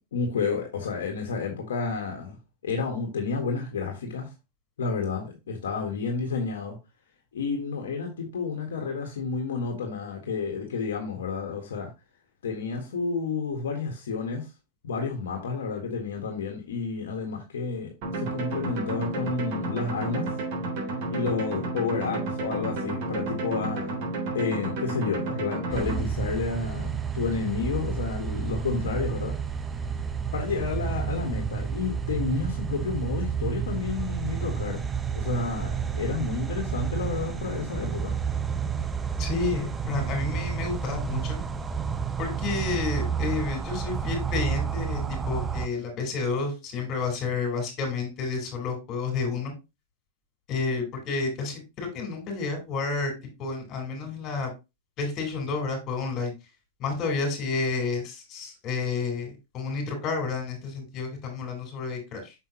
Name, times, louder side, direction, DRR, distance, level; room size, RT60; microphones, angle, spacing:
voice 1, 0.1-2.4 2.6-4.3 4.8-6.8 7.3-11.9 12.4-14.5 14.8-20.3 21.1-24.0 24.3-29.4 30.3-34.8 35.1-38.2, left 5 dB, 80° left, 1.6 m, -30 dB
sound 1, 18.0-26.0, right 2 dB, 55° right, 3.6 m, -31 dB
sound 2, 25.7-45.7, right 7 dB, 15° right, 0.7 m, -30 dB
voice 2, 39.2-41.4 42.2-49.5 50.5-53.1 53.4-54.5 55.0-56.3 56.8-62.3, left 4 dB, 40° left, 4.4 m, -30 dB
6.7 x 5.8 x 3.0 m
hypercardioid pair, 110°, 0 cm